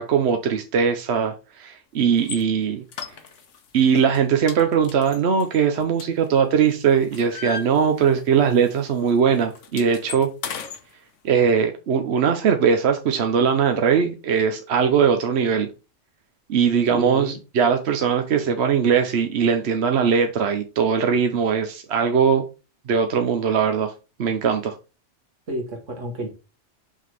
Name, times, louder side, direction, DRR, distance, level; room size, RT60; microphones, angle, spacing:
voice 1, 0.0-2.8 3.7-10.3 11.2-15.7 16.5-22.5 22.9-23.9 24.2-24.7, right 7 dB, 65° right, 1.0 m, -20 dB
sound 1, 2.2-2.4 2.9-3.7 4.0-4.2 4.5-6.5 6.9-8.3 8.6-8.8 9.1-10.8, left 6 dB, 80° left, 1.2 m, -36 dB
voice 2, 16.9-17.4 25.5-26.3, right 1 dB, 80° right, 2.1 m, -30 dB
5.6 x 3.7 x 4.7 m
omnidirectional pair, 1.3 m